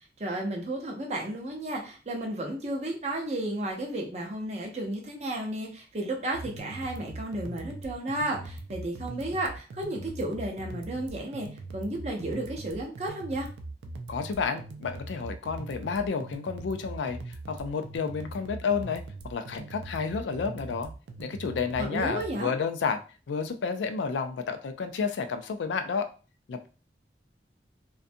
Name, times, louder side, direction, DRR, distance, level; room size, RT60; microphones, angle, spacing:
voice 1, 0.2-11.5 11.7-13.5 21.8-22.5, right 1 dB, 40° right, 1 dB, 0.6 m, -33 dB
sound 1, 6.3-22.3, right 2 dB, 90° right, 0.4 m, -41 dB
voice 2, 14.1-19.0 19.3-20.9 21.2-23.0 23.3-26.1 26.5-26.7, left 5 dB, 90° left, 9 dB, 0.4 m, -31 dB
2.5 x 2.2 x 2.5 m, 0.35 s
head